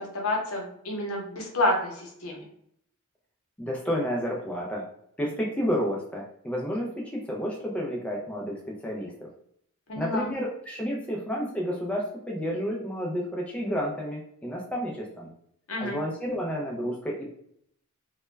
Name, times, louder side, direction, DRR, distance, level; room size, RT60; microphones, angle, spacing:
voice 1, 0.1-2.4 9.9-10.3 15.7-16.0, left 1 dB, 75° left, 0 dB, 0.7 m, -29 dB
voice 2, 3.6-4.8 5.2-9.1 10.0-15.3 15.8-17.3, equal, 5° left, -3 dB, 0.3 m, -31 dB
2.2 x 2.1 x 3.1 m, 0.69 s
head